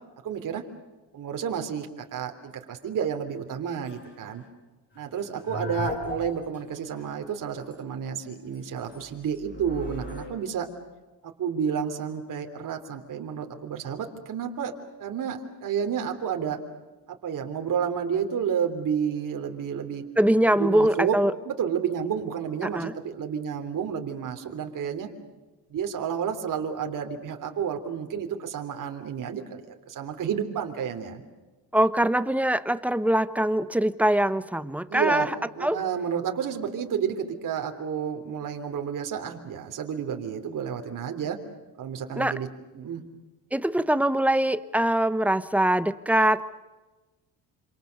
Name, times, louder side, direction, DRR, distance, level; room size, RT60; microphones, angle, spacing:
voice 1, 0.2-0.6 1.1-4.4 4.9-10.7 11.4-14.7 15.0-16.6 17.2-20.1 20.5-21.2 21.4-25.1 25.7-29.6 29.9-31.2 34.9-35.3 35.5-41.4 41.8-42.5 42.7-43.0, right 7 dB, 50° right, 4 dB, 3.2 m, -30 dB
sound 1, 3.8-4.1 5.2-6.6 7.0-7.1 7.5-7.8 8.5-10.3, left 2 dB, 30° left, 6.7 m, -36 dB
voice 2, 20.2-21.3 22.6-22.9 31.7-35.3 35.6-35.8 42.1-42.4 43.5-46.4, right 1 dB, 5° right, 13 dB, 1.0 m, -23 dB
27.5 x 27.5 x 6.6 m, 1.2 s
cardioid pair, 125°, 39 cm